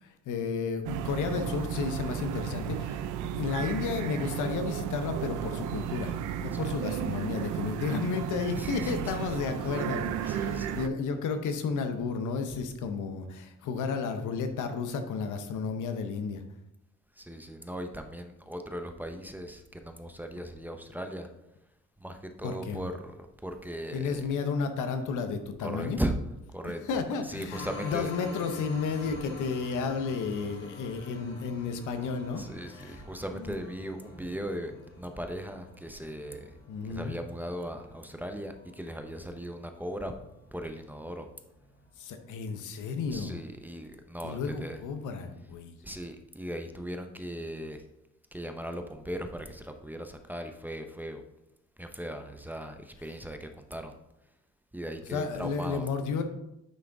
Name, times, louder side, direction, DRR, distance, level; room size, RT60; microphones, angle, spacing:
voice 1, 0.0-3.0 3.3-16.4 22.4-22.8 23.9-26.0 26.6-33.0 33.3-33.6 36.7-37.2 42.0-43.4 44.2-45.8 55.1-56.2, left 5 dB, 80° left, 7 dB, 0.9 m, -32 dB
sound 1, 0.8-10.9, right 10 dB, 85° right, 0.5 m, -34 dB
voice 2, 8.5-9.2 10.3-10.7 17.2-21.3 22.0-24.3 25.6-26.2 26.5-26.8 27.2-28.1 32.4-36.6 36.9-40.1 40.5-41.3 43.1-44.8 45.8-47.8 48.3-51.2 51.8-54.0 54.7-55.9, equal, 5° right, 6 dB, 0.6 m, -38 dB
sound 2, 27.5-42.4, left 2 dB, 55° left, 2.0 m, -48 dB
9.4 x 3.7 x 3.5 m, 0.86 s
cardioid pair, 90°, 30 cm